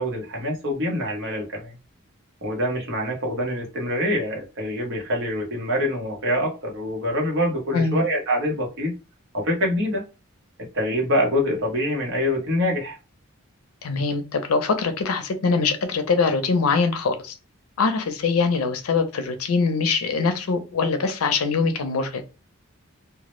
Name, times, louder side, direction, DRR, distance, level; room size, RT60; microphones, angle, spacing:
voice 1, 0.0-1.7 2.4-8.9 9.3-10.0 10.7-13.0, equal, 60° right, 0.8 m, -25 dB
voice 2, 13.8-17.4 17.8-22.2, left 4 dB, 85° left, 0.5 m, -23 dB
2.1 x 2.0 x 2.9 m
head